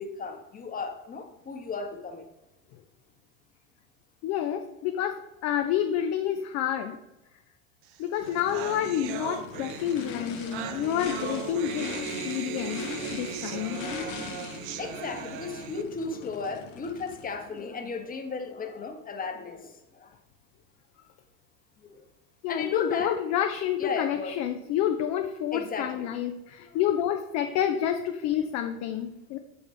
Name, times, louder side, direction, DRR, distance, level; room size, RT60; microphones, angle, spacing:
voice 1, 0.0-2.3 14.8-20.1 21.8-22.0 22.5-23.2 23.8-24.3 25.5-26.0, left 4 dB, 20° left, 5 dB, 1.0 m, -35 dB
voice 2, 4.2-7.0 8.0-11.9 12.2-12.8 13.1-14.2 22.4-29.4, left 10 dB, 40° left, 6 dB, 0.5 m, -29 dB
sound 1, 7.9-8.0 8.2-15.8, right 9 dB, 45° right, 0.6 m, -38 dB
Race car auto racing / Idling / Accelerating revving vroom, 8.2-17.6, left 7 dB, 65° left, 1.0 m, -40 dB
6.9 x 5.4 x 3.3 m, 1.0 s
hypercardioid pair, 85°, 42 cm